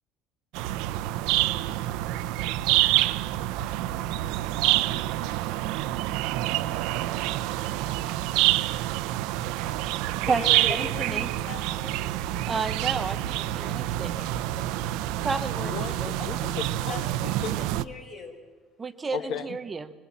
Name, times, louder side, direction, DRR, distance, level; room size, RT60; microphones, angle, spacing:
sound 1, 0.5-17.8, right 15 dB, 85° right, 0.7 m, -27 dB
voice 1, 9.4-12.0 13.5-14.3 14.5-14.7 16.2-16.3 16.9-17.0 17.6-18.4 19.1-19.3, left 3 dB, 25° left, 3 dB, 4.5 m, -41 dB
voice 2, 10.3-11.3 12.4-14.2 15.2-16.2 18.8-19.9, right 4 dB, 20° right, 11 dB, 0.8 m, -31 dB
voice 3, 15.6-17.9 19.1-19.6, left 8 dB, 55° left, 11 dB, 1.5 m, -36 dB
26.0 x 22.0 x 7.3 m, 1.3 s
cardioid pair, 165°, 0 cm